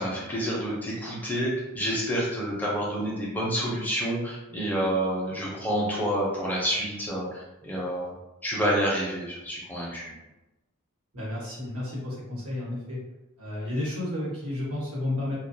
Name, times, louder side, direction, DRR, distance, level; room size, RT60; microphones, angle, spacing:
voice 1, 0.0-8.1 8.4-10.1, equal, 10° left, -5 dB, 0.5 m, -28 dB
voice 2, 11.1-13.0 13.4-15.4, left 1 dB, 85° right, -6 dB, 1.1 m, -32 dB
2.3 x 2.2 x 2.6 m, 1.0 s
head